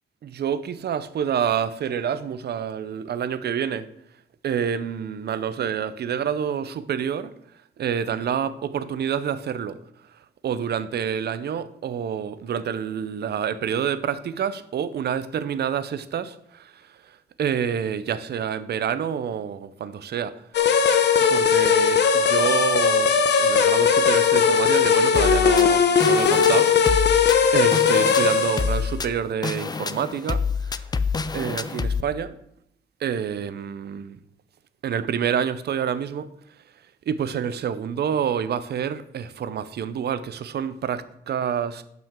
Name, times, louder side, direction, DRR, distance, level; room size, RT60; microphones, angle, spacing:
voice 1, 0.2-3.9 4.4-7.3 7.8-9.8 10.4-20.3 21.3-27.2 27.5-30.8 31.3-32.4 33.0-34.2 34.8-36.3 37.1-41.8, right 8 dB, 55° right, 13 dB, 0.7 m, -28 dB
sound 1, 20.5-28.8, left 6 dB, 60° left, 0.9 m, -19 dB
sound 2, 25.1-32.0, left 5 dB, 20° left, 0.5 m, -28 dB
12.0 x 5.9 x 3.8 m, 0.74 s
cardioid pair, 90°, 20 cm